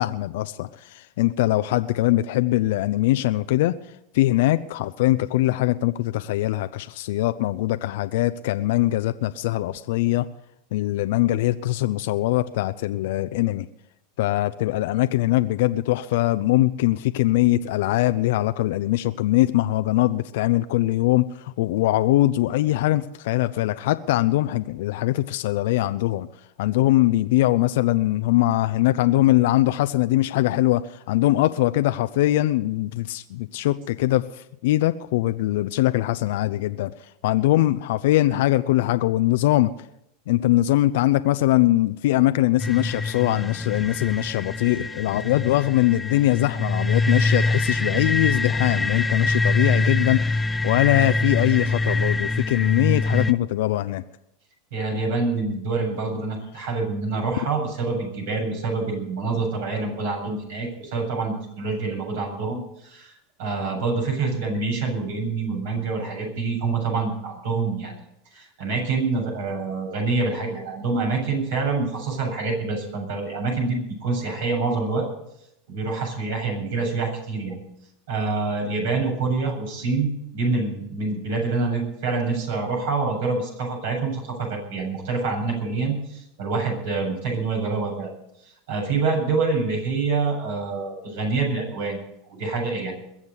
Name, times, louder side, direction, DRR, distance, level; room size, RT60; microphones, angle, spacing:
voice 1, 0.0-3.8 4.1-10.3 10.7-13.7 14.2-26.3 26.6-39.7 40.3-54.0, left 16 dB, 70° left, 11 dB, 0.5 m, -22 dB
sound 1, 42.6-53.3, left 3 dB, 10° left, 0.6 m, -24 dB
voice 2, 54.7-63.1 63.4-68.0 68.3-75.1 75.7-77.6 78.1-88.1 88.7-92.0 92.3-93.0, right 4 dB, 70° right, 2 dB, 7.7 m, -26 dB
21.5 x 7.3 x 8.2 m, 0.82 s
hypercardioid pair, 110°, 0 cm